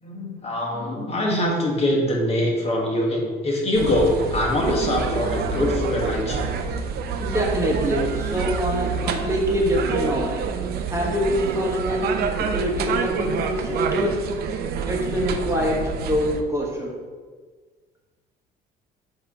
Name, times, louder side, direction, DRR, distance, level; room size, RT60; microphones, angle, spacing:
voice 1, 0.0-6.5, left 1 dB, 35° left, -2 dB, 1.4 m, -23 dB
sound 1, 3.7-16.4, right 5 dB, 65° right, 0.6 m, -27 dB
voice 2, 7.2-10.3 10.9-14.2 14.9-16.9, equal, 15° right, -2 dB, 1.2 m, -25 dB
7.7 x 2.9 x 4.8 m, 1.5 s
cardioid pair, 110°, 17 cm